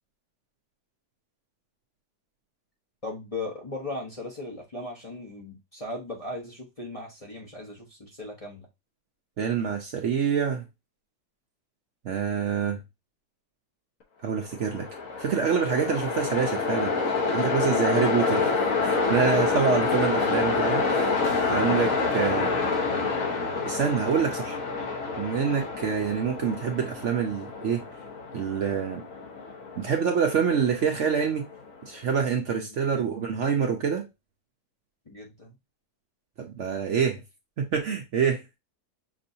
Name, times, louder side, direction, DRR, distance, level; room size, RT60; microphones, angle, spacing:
voice 1, 3.0-8.7 32.7-33.0 35.1-35.5, left 2 dB, 30° left, 0.8 m, -37 dB
voice 2, 9.4-10.6 12.0-12.8 14.2-14.9 15.2-17.0 17.3-18.5 18.8-21.2 21.5-22.5 23.7-24.6 25.2-27.8 28.3-29.0 29.8-31.5 31.8-34.0 36.4-37.2 37.6-38.4, right 7 dB, 60° right, 0.9 m, -26 dB
Train, 14.5-31.7, left 4 dB, 60° left, 1.3 m, -28 dB
6.1 x 2.6 x 2.7 m
omnidirectional pair, 1.7 m